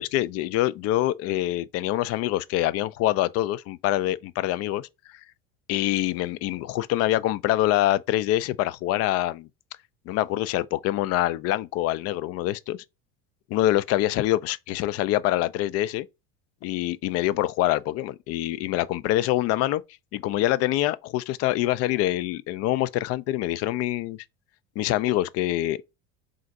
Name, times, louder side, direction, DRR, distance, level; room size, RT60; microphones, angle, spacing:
voice 1, 0.0-4.9 5.7-9.5 10.1-12.8 13.5-16.1 16.6-19.8 20.1-24.2 24.8-25.8, left 14 dB, 55° left, 0.4 m, -25 dB
3.7 x 2.6 x 4.4 m
supercardioid pair, 95°, 30 cm